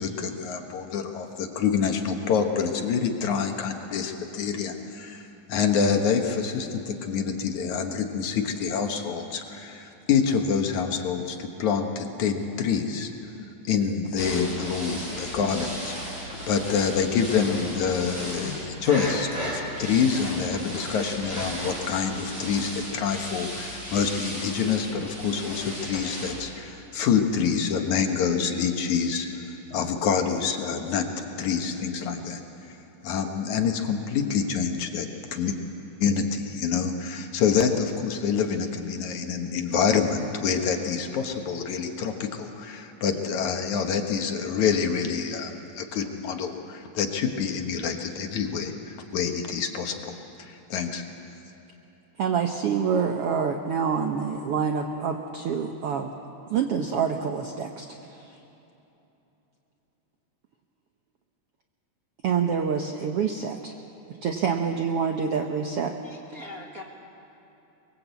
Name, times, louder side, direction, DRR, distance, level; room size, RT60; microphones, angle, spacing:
voice 1, 0.0-13.1 13.6-29.4 29.7-32.4 32.7-32.8 33.0-35.6 36.0-50.1 50.4-51.0, left 6 dB, 65° left, 2.4 m, -27 dB
sound 1, 14.2-26.3, equal, 20° right, 5.0 m, -35 dB
voice 2, 52.2-56.1 56.5-58.4 62.2-63.7 64.2-65.9, right 6 dB, 85° right, 1.2 m, -27 dB
voice 3, 66.0-66.8, left 2 dB, 40° right, 1.3 m, -41 dB
23.0 x 21.5 x 8.2 m
omnidirectional pair, 4.0 m